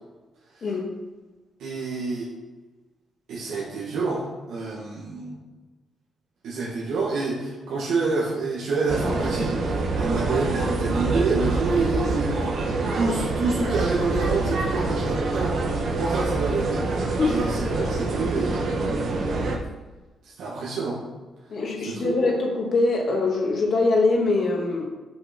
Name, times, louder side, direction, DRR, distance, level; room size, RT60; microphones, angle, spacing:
voice 1, 1.6-2.2 3.3-5.3 6.4-12.5 12.9-15.6 15.9-18.7 20.2-21.0 21.8-22.3, right 3 dB, 85° right, -5 dB, 1.7 m, -28 dB
sound 1, 8.9-19.6, right 3 dB, 65° right, 1.2 m, -26 dB
voice 2, 21.5-24.9, left 3 dB, 50° left, 0 dB, 1.8 m, -23 dB
7.7 x 5.6 x 4.4 m, 1.3 s
cardioid pair, 130°, 0 cm